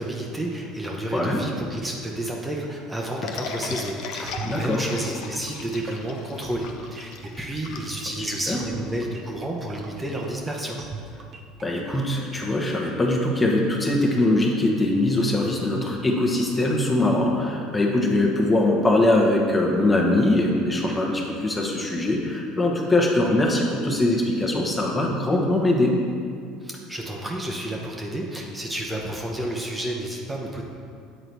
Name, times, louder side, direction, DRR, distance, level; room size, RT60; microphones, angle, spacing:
voice 1, 0.0-10.8 26.6-30.6, right 1 dB, 15° right, -1 dB, 0.9 m, -31 dB
voice 2, 1.1-1.5 4.4-4.8 8.3-8.6 11.6-25.9, left 1 dB, 20° left, -1 dB, 1.1 m, -22 dB
sound 1, 3.2-8.5, left 5 dB, 65° left, 0.6 m, -36 dB
sound 2, 4.2-12.9, right 5 dB, 45° right, 0.6 m, -42 dB
8.3 x 3.9 x 4.5 m, 2.3 s
hypercardioid pair, 75°, 0 cm